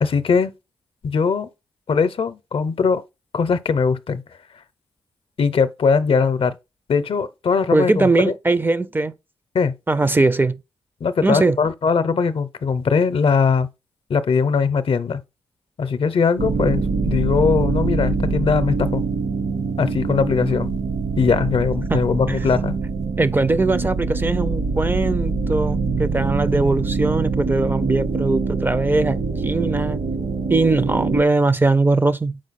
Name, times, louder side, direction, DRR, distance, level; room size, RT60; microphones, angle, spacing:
voice 1, 0.0-0.5 1.0-1.5 1.9-3.0 3.3-4.2 5.4-6.5 6.9-8.3 9.5-9.7 11.0-13.7 14.1-15.2 15.8-19.0 19.8-20.7 21.2-22.7, left 5 dB, 55° left, 0.7 m, -20 dB
voice 2, 7.7-9.1 9.9-10.6 11.2-11.6 21.9-22.0 22.3-22.4 23.2-30.0 30.5-32.4, right 3 dB, 20° right, 0.4 m, -20 dB
sound 1, 16.4-31.2, right 4 dB, 65° right, 1.0 m, -24 dB
6.3 x 4.5 x 4.1 m
cardioid pair, 65°, 11 cm